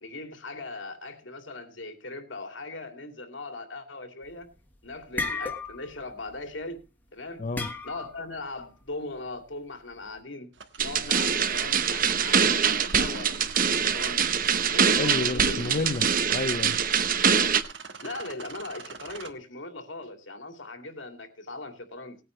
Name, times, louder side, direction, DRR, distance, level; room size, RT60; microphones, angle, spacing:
voice 1, 0.0-4.5 4.8-6.8 7.1-7.5 7.8-10.5 10.8-14.3 14.7-15.7 18.0-22.2, left 2 dB, 90° left, 2.6 m, -39 dB
sound 1, 4.3-4.6 4.9-6.0 6.3-6.5 7.6-8.3, left 3 dB, 10° left, 1.4 m, -33 dB
sound 2, 10.5-19.3, right 5 dB, 70° right, 1.5 m, -43 dB
sound 3, 10.8-17.6, right 7 dB, 50° right, 0.9 m, -24 dB
voice 2, 15.0-16.8, left 3 dB, 45° left, 0.7 m, -30 dB
19.5 x 9.2 x 3.2 m
head